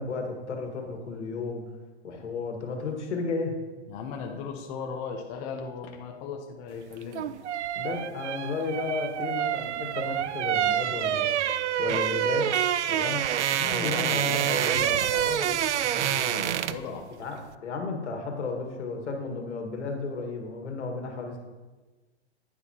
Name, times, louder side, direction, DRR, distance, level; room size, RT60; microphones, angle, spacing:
voice 1, 0.0-1.6 2.0-3.5 7.8-11.4 11.8-12.5 12.9-13.2 13.6-14.9 17.2-21.4, left 4 dB, 85° left, 2 dB, 1.9 m, -33 dB
voice 2, 3.9-7.3 13.5-17.1, left 5 dB, 30° left, 2 dB, 0.7 m, -37 dB
sound 1, 6.9-16.9 17.2-17.4, right 10 dB, 85° right, 0.5 m, -27 dB
9.3 x 7.7 x 2.9 m, 1.2 s
hypercardioid pair, 145°, 34 cm